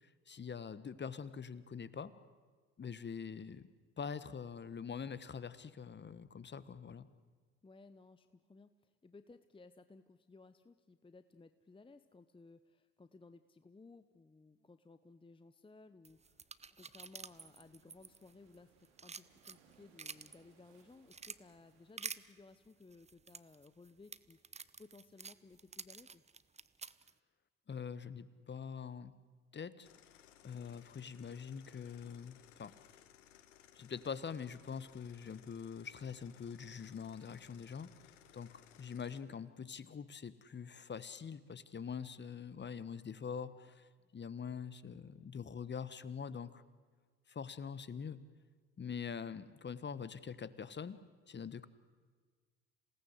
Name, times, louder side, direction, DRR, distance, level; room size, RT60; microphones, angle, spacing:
voice 1, 0.0-2.1 2.8-3.7 4.0-7.1 27.7-29.1 29.5-29.9 30.4-32.7 33.7-37.9 38.3-46.6 47.3-48.2 48.8-51.0 51.3-51.7, left 6 dB, 30° left, 15 dB, 1.3 m, -44 dB
voice 2, 7.6-26.2 44.0-44.1, left 3 dB, 15° left, 11 dB, 0.9 m, -59 dB
sound 1, 16.0-18.6 18.8-20.4 20.8-21.4 22.0-22.2 22.9-27.1, right 5 dB, 20° right, 0.8 m, -48 dB
sound 2, 16.9-22.0, right 6 dB, 75° right, 3.2 m, -70 dB
sound 3, 29.8-39.2, left 11 dB, 85° left, 1.3 m, -62 dB
27.0 x 18.5 x 8.1 m, 1.5 s
hypercardioid pair, 65°, 37 cm